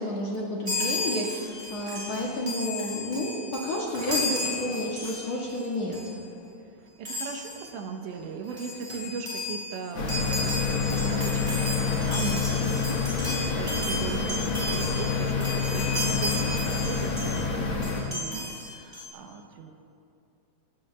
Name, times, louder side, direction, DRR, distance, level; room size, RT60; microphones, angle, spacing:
voice 1, 0.0-6.0, left 1 dB, 45° left, -4 dB, 2.5 m, -31 dB
Chime, 0.6-5.6 5.9-6.1 7.0-7.6 8.2-8.3 8.5-17.5 17.8-19.1, left 1 dB, 10° right, 4.1 m, -34 dB
voice 2, 7.0-19.7, right 5 dB, 80° right, 4 dB, 3.3 m, -38 dB
sound 1, 9.9-18.0, left 5 dB, 80° left, 1.1 m, -27 dB
30.0 x 16.0 x 2.4 m, 2.5 s
omnidirectional pair, 5.1 m